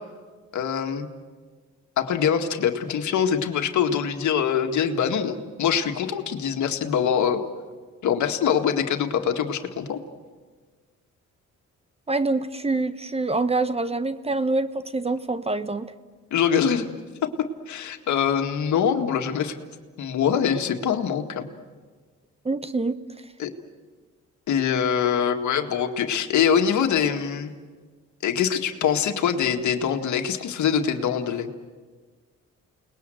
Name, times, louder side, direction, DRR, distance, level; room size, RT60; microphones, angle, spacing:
voice 1, 0.5-1.1 2.0-7.4 8.0-10.0 16.3-16.9 17.2-19.5 20.0-21.5 23.4-23.5 24.5-27.5 28.2-31.5, left 8 dB, 70° left, 5 dB, 2.0 m, -24 dB
voice 2, 12.1-15.9 22.4-23.0, right 3 dB, 20° right, 13 dB, 1.0 m, -25 dB
29.5 x 20.0 x 7.8 m, 1.5 s
cardioid pair, 90°, 30 cm